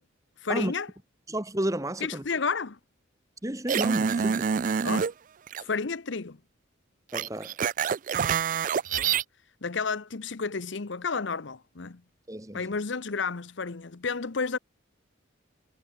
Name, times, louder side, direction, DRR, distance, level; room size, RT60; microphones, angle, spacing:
voice 1, 0.4-0.9 2.0-2.8 4.8-5.1 5.6-6.4 9.0-9.1 9.6-12.0 12.5-14.6, left 4 dB, 65° left, 0.8 m, -31 dB
voice 2, 1.3-2.2 3.4-4.5 7.1-7.5 12.3-12.7, right 1 dB, 15° right, 1.5 m, -31 dB
sound 1, 3.7-5.1 5.5-5.6 7.1-9.2, right 7 dB, 40° right, 0.3 m, -26 dB
head